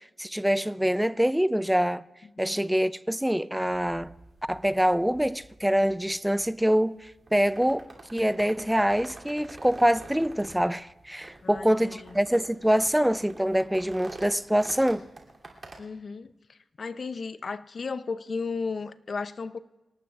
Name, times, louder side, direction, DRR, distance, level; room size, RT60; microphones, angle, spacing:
voice 1, 0.2-2.0 2.4-4.1 4.5-15.0, equal, 5° right, 0.4 m, -25 dB
voice 2, 2.2-2.6 11.4-12.2 15.8-19.6, left 4 dB, 50° left, 0.6 m, -35 dB
sound 1, 3.6-15.8, right 3 dB, 40° right, 2.9 m, -48 dB
28.0 x 18.0 x 2.4 m
wide cardioid pair, 105°, 0 cm